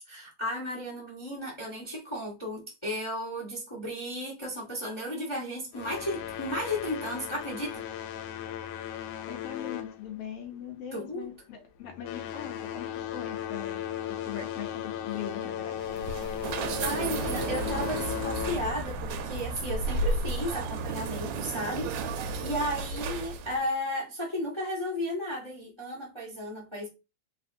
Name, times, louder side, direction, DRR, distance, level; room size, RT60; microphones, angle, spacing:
voice 1, 0.1-7.8 10.9-11.3 16.4-26.9, equal, 35° left, 0.4 m, -34 dB
sound 1, 5.7-10.6 10.9-11.3 11.8-18.9, left 11 dB, 90° left, 2.1 m, -36 dB
voice 2, 9.3-13.8 14.1-16.0 16.3-16.4, left 8 dB, 70° left, 1.5 m, -41 dB
sound 2, 15.8-23.7, right 3 dB, 80° right, 1.8 m, -33 dB
4.3 x 3.7 x 2.6 m
omnidirectional pair, 3.5 m